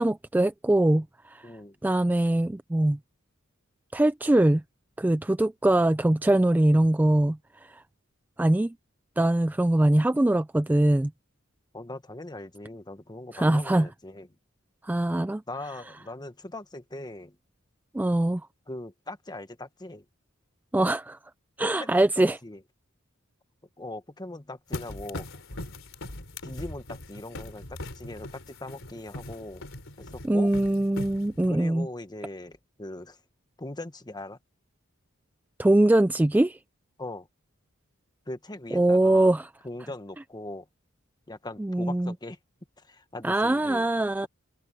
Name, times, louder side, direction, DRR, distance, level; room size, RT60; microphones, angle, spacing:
voice 1, 0.0-1.5 1.8-3.0 3.9-4.6 5.0-7.8 8.4-8.7 9.2-11.1 13.3-13.9 14.8-15.4 17.9-18.4 20.7-21.2 21.6-22.4 30.2-31.9 35.6-36.6 38.7-39.5 41.6-42.1 43.2-44.3, right 1 dB, 10° right, 0.3 m, -22 dB
voice 2, 1.4-1.8 11.7-14.3 15.5-17.4 18.7-20.0 21.6-22.1 22.4-22.6 23.8-25.3 26.4-29.6 30.0-30.5 31.5-33.2 33.6-34.4 37.0-37.3 38.3-39.3 39.6-40.7 41.3-42.4 42.8-43.9, left 2 dB, 20° left, 1.4 m, -40 dB
sound 1, 24.7-31.5, left 1 dB, 65° left, 3.8 m, -40 dB
head